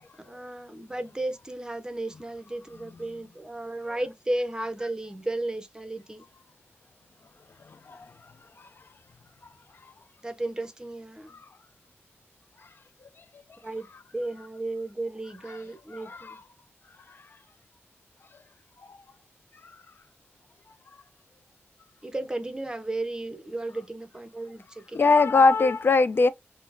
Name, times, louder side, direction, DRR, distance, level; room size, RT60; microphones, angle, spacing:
voice 1, 0.2-6.3 10.2-11.4 13.6-13.9 14.1-16.4 22.0-25.4, right 2 dB, 15° right, 0.6 m, -34 dB
voice 2, 15.9-16.4 18.9-19.0 24.9-26.3, left 3 dB, 50° left, 0.4 m, -20 dB
4.1 x 2.1 x 2.5 m
wide cardioid pair, 115°, 5 cm